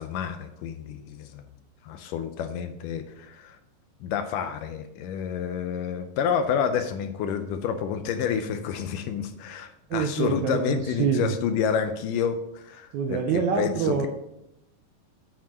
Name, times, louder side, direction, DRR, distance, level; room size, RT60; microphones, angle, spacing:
voice 1, 0.0-1.4 1.8-3.6 4.0-14.1, left 7 dB, 80° left, 9 dB, 2.2 m, -29 dB
voice 2, 9.9-11.3 12.9-14.1, right 6 dB, 75° right, 4 dB, 1.8 m, -26 dB
9.1 x 5.0 x 6.2 m, 0.85 s
omnidirectional pair, 3.9 m